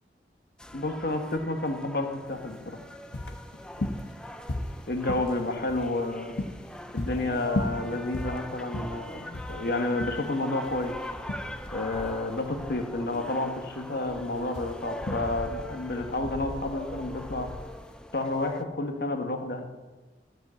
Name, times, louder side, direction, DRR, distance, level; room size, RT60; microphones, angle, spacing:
sound 1, 0.6-18.6, left 1 dB, 5° left, 0.5 m, -41 dB
voice 1, 0.7-2.8 4.9-6.3 6.9-11.0 11.7-17.5 18.1-19.7, left 2 dB, 60° left, 5 dB, 1.3 m, -30 dB
sound 2, 2.3-17.9, left 1 dB, 85° left, 1.0 m, -37 dB
12.5 x 5.2 x 8.2 m, 1.3 s
head